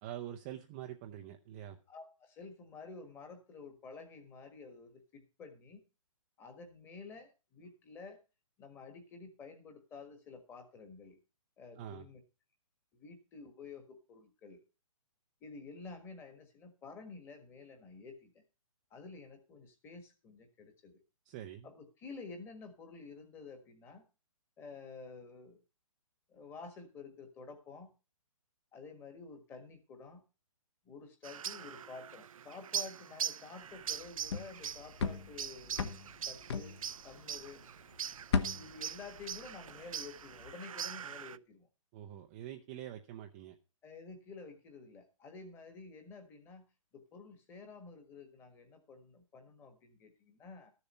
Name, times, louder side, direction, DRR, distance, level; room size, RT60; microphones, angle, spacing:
voice 1, 0.0-1.8 11.8-12.1 21.2-21.7 41.9-43.6, right 11 dB, 15° right, 4 dB, 0.6 m, -45 dB
voice 2, 1.9-5.8 6.4-8.2 8.6-11.2 11.6-12.2 12.9-14.6 15.4-18.4 18.9-21.0 21.6-24.0 24.6-25.6 26.3-27.9 28.7-30.2 30.8-35.8 36.3-36.8 37.0-37.6 38.5-41.7 43.8-46.6 46.9-50.7, left 4 dB, 10° left, 6 dB, 1.6 m, -51 dB
sound 1, 31.2-41.4, right 8 dB, 70° right, 0.5 m, -42 dB
sound 2, 33.9-37.6 37.9-39.9 40.2-40.5, left 5 dB, 50° left, 1.4 m, -37 dB
13.5 x 6.9 x 5.5 m, 0.31 s
hypercardioid pair, 165°, 19 cm